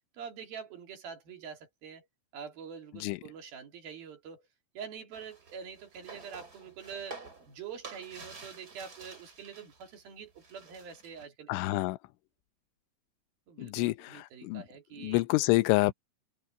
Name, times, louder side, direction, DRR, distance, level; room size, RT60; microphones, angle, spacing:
voice 1, 0.1-2.1 2.3-4.5 4.7-11.6 13.5-15.2, right 7 dB, 55° right, 4.2 m, -45 dB
sound 1, 5.1-10.0 10.2-11.3, right 4 dB, 20° right, 3.7 m, -50 dB
voice 2, 11.5-12.0 13.6-14.6 15.0-15.9, left 21 dB, 90° left, 3.1 m, -27 dB
omnidirectional pair, 5.3 m